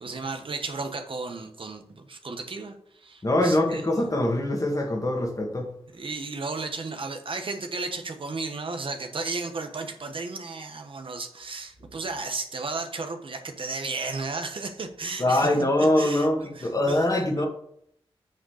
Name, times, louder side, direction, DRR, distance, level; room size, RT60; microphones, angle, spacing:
voice 1, 0.0-3.8 5.9-15.5 15.8-16.3 16.5-17.5, right 3 dB, 60° right, 1.1 m, -34 dB
voice 2, 3.2-5.7 15.2-17.5, left 1 dB, 35° left, 1.8 m, -23 dB
8.1 x 3.8 x 6.4 m
cardioid pair, 50°, 10 cm